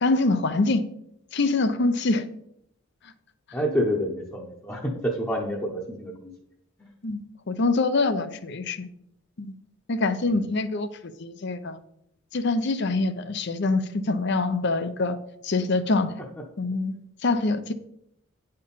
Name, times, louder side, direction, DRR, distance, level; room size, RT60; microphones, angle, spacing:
voice 1, 0.0-0.9 1.3-2.3 7.0-8.9 9.4-9.6 9.9-11.8 12.3-15.2 15.4-16.1 16.6-16.9 17.2-17.7, left 3 dB, 55° left, 0.7 m, -25 dB
voice 2, 3.5-6.3 6.8-6.9 10.3-10.4, equal, 10° left, 0.9 m, -28 dB
9.5 x 4.5 x 5.4 m
head